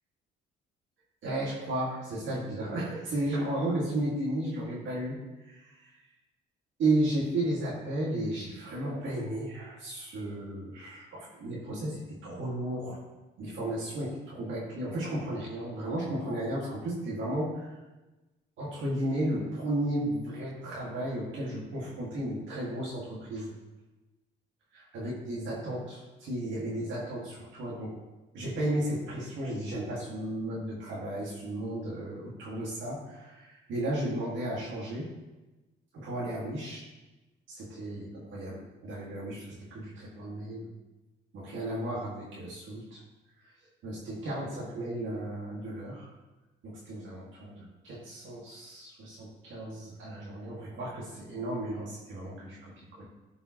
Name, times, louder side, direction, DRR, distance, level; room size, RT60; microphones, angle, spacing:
voice 1, 1.2-5.9 6.8-13.0 13.4-17.8 18.6-23.5 24.9-27.9 28.3-35.1 35.9-36.8 37.5-40.7 41.3-43.0 43.4-43.5 43.8-46.1 46.6-53.0, right 1 dB, 75° right, -5 dB, 2.0 m, -34 dB
12.0 x 5.4 x 3.0 m, 1.1 s
cardioid pair, 90°, 20 cm